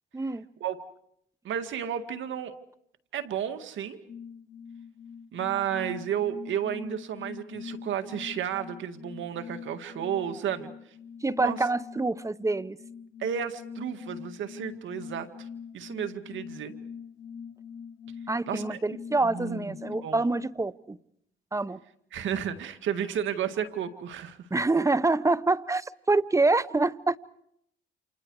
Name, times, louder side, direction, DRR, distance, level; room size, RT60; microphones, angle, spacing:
voice 1, 0.1-0.5 11.2-12.8 18.3-21.0 21.5-21.8 24.5-27.2, right 3 dB, 15° right, 0.9 m, -26 dB
voice 2, 1.4-2.5 3.1-4.0 5.3-10.7 11.4-11.6 13.2-15.5 15.7-16.7 18.5-18.8 19.2-19.8 20.0-20.3 22.1-24.5, right 9 dB, 75° right, 2.1 m, -32 dB
sound 1, 4.1-20.6, left 6 dB, 65° left, 6.1 m, -43 dB
29.5 x 27.5 x 4.8 m
cardioid pair, 90°, 20 cm